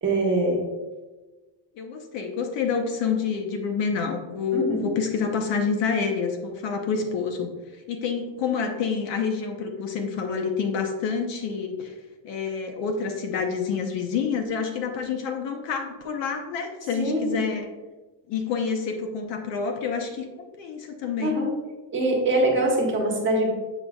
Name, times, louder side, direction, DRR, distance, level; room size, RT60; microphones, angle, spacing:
voice 1, 0.0-0.6 4.5-4.8 17.0-17.5 21.2-21.5 21.9-23.5, right 1 dB, 25° right, -1 dB, 1.2 m, -23 dB
voice 2, 1.8-7.5 7.9-11.9 12.2-17.7 18.3-20.2 20.6-21.4, left 5 dB, 65° left, 5 dB, 1.0 m, -28 dB
7.1 x 5.7 x 2.4 m, 1.2 s
cardioid pair, 155°, 47 cm